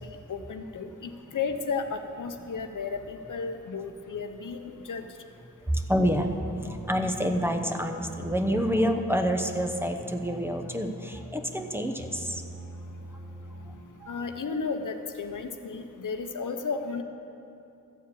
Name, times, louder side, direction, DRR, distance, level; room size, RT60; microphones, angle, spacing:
voice 1, 0.0-5.1 14.1-17.0, left 5 dB, 75° left, 6 dB, 0.8 m, -33 dB
voice 2, 5.7-6.3 6.6-12.4 14.0-14.1, equal, 5° right, 5 dB, 0.8 m, -28 dB
sound 1, 6.0-14.1, right 1 dB, 70° right, 1.6 m, -43 dB
13.5 x 4.7 x 8.5 m, 2.8 s
wide cardioid pair, 70°, 32 cm